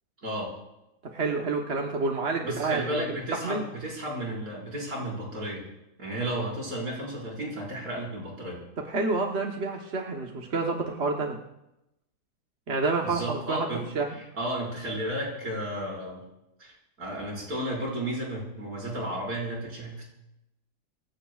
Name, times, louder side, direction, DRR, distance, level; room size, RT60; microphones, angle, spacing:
voice 1, 1.1-2.9 3.4-3.6 8.9-11.4 12.7-13.7 13.9-14.2, right 3 dB, 50° right, 1 dB, 1.4 m, -28 dB
voice 2, 2.4-5.7 6.0-8.6 13.0-13.9 14.1-16.2 16.6-20.0, right 1 dB, 75° right, -4 dB, 5.8 m, -33 dB
26.5 x 15.5 x 2.4 m, 0.90 s
omnidirectional pair, 1.5 m